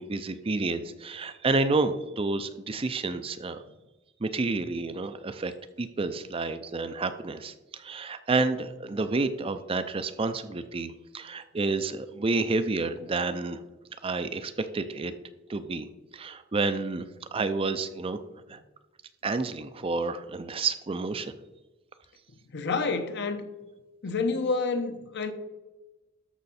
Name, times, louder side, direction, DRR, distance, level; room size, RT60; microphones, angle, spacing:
voice 1, 0.0-3.6 4.2-5.5 5.8-13.6 14.0-15.1 15.5-15.9 16.1-18.2 18.5-18.6 19.2-21.3, right 3 dB, 25° right, 0.5 m, -29 dB
voice 2, 22.5-23.4 24.0-25.3, left 4 dB, 55° left, 1.0 m, -28 dB
13.0 x 5.7 x 4.2 m
head